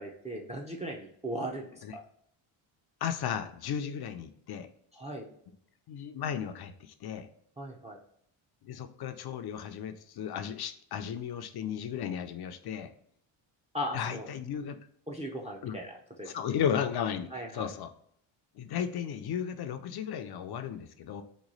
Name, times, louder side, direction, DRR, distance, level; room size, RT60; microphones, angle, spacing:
voice 1, 0.0-2.0 4.9-5.3 7.6-8.0 13.7-14.3 15.1-16.3 17.3-17.7, equal, 15° right, 0 dB, 0.5 m, -38 dB
voice 2, 3.0-4.7 5.9-7.3 8.6-12.9 13.9-14.8 15.6-15.7 16.3-17.9 18.6-21.2, left 8 dB, 50° left, 8 dB, 0.5 m, -35 dB
3.1 x 2.3 x 3.9 m, 0.65 s
cardioid pair, 80°, 49 cm